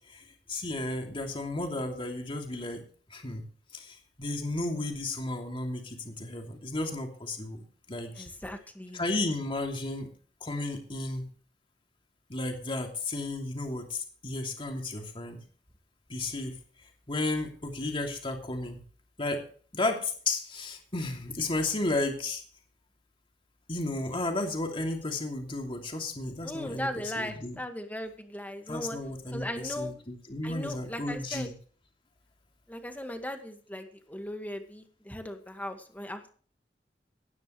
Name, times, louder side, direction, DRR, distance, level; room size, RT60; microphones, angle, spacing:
voice 1, 0.1-2.8 3.1-3.4 3.7-8.3 8.9-10.1 10.4-11.3 12.3-15.4 16.1-16.6 17.1-18.8 19.2-19.4 19.7-22.4 23.7-26.9 27.2-27.6 28.7-31.5, left 2 dB, 30° left, 3 dB, 2.7 m, -33 dB
voice 2, 8.2-9.0 26.4-29.0 29.3-29.9 30.4-31.5 32.7-36.3, left 1 dB, 10° left, 6 dB, 1.8 m, -38 dB
17.0 x 11.0 x 3.2 m, 0.43 s
head